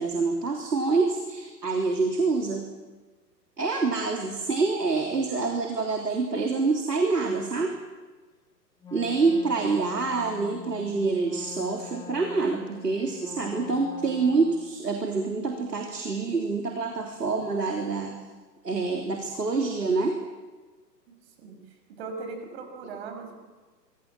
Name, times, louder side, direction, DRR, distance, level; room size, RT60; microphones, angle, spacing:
voice 1, 0.0-2.7 3.6-7.7 8.9-18.2 18.6-20.2, right 4 dB, 70° right, 2 dB, 3.5 m, -26 dB
Wind instrument woodwind instrument, 8.8-14.8, left 9 dB, 10° left, 2.1 m, -45 dB
voice 2, 9.2-9.5 21.4-21.6 21.9-23.3, right 4 dB, 40° right, 6 dB, 6.2 m, -39 dB
26.0 x 23.5 x 7.5 m, 1.3 s
figure-of-eight pair, 120°, 49 cm